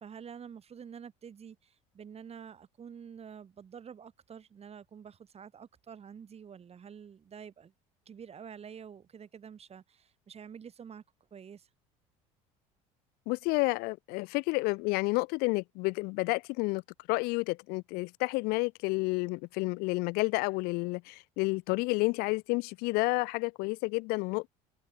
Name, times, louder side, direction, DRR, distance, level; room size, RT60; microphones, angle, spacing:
voice 1, 0.0-7.7 8.1-11.0 11.3-11.7, right 7 dB, 35° right, 3.9 m, -48 dB
voice 2, 13.3-16.8 17.1-24.5, left 26 dB, 65° left, 0.4 m, -30 dB
hypercardioid pair, 80°, 17 cm